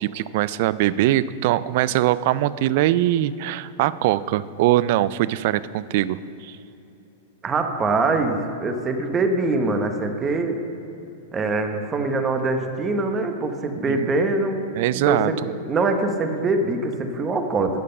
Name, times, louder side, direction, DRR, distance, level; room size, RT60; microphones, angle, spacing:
voice 1, 0.0-6.6 13.9-14.1 14.7-15.3, right 14 dB, 55° right, 17 dB, 0.3 m, -22 dB
voice 2, 7.4-10.6 11.3-14.6 14.9-15.4 15.6-17.8, right 3 dB, 20° right, 6 dB, 0.9 m, -23 dB
10.5 x 7.6 x 5.5 m, 2.8 s
supercardioid pair, 140°, 0 cm